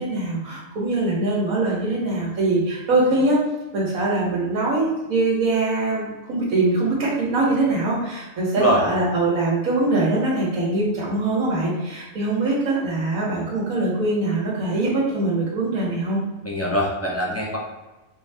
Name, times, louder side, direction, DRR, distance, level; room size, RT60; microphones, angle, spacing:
voice 1, 0.0-3.4 3.7-16.2, right 2 dB, 90° right, -6 dB, 1.5 m, -22 dB
voice 2, 16.4-17.6, equal, 15° left, -2 dB, 0.5 m, -22 dB
4.3 x 2.7 x 3.3 m, 1.1 s
omnidirectional pair, 1.4 m